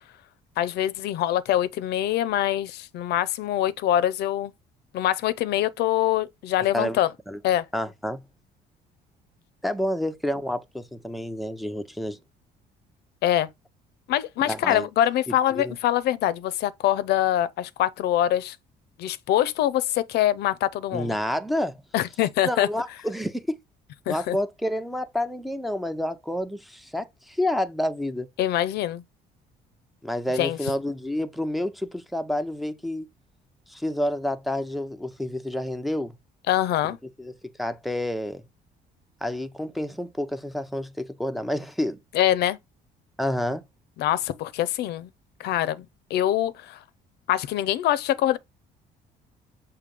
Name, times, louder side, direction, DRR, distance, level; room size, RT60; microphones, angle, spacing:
voice 1, 0.6-4.5 4.9-7.1 7.4-7.6 13.2-13.5 14.1-18.6 19.0-21.1 21.9-22.7 24.1-24.4 28.4-29.0 30.4-30.6 36.5-37.0 42.1-42.6 44.0-45.1 45.4-46.8 47.3-48.4, left 12 dB, 75° left, 0.7 m, -24 dB
voice 2, 7.7-8.2 9.6-12.2 14.5-14.9 15.5-15.7 20.9-21.8 22.4-23.4 24.1-28.3 30.0-33.1 33.7-36.2 36.8-37.3 37.6-38.4 39.2-42.0 43.2-43.6, left 1 dB, ahead, 0.7 m, -29 dB
6.7 x 2.8 x 5.3 m
cardioid pair, 110°, 17 cm